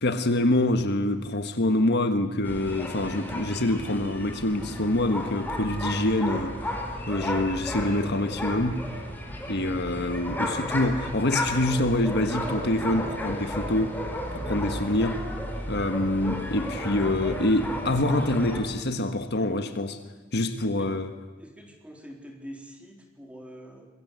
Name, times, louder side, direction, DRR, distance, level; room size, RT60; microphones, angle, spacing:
voice 1, 0.0-8.8 9.5-14.1 14.5-15.2 15.7-20.0 20.3-21.1, left 1 dB, 55° left, 1.5 m, -26 dB
sound 1, 2.4-18.6, left 1 dB, 10° left, 4.4 m, -33 dB
voice 2, 21.4-23.9, equal, 5° right, 3.9 m, -45 dB
25.5 x 22.0 x 8.2 m
head